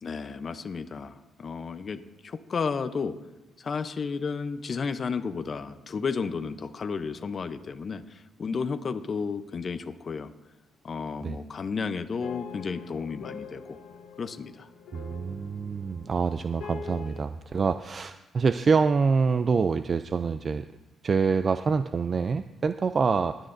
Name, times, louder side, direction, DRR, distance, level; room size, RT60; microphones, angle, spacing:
voice 1, 0.0-3.1 3.6-10.3 10.8-13.8 14.2-14.7, left 5 dB, 45° left, 10 dB, 0.6 m, -32 dB
sound 1, 12.2-17.2, left 6 dB, 90° left, 1.2 m, -44 dB
voice 2, 14.9-20.7 21.0-23.4, right 5 dB, 40° right, 10 dB, 0.3 m, -26 dB
20.0 x 9.0 x 2.6 m, 1.0 s
cardioid pair, 90°, 0 cm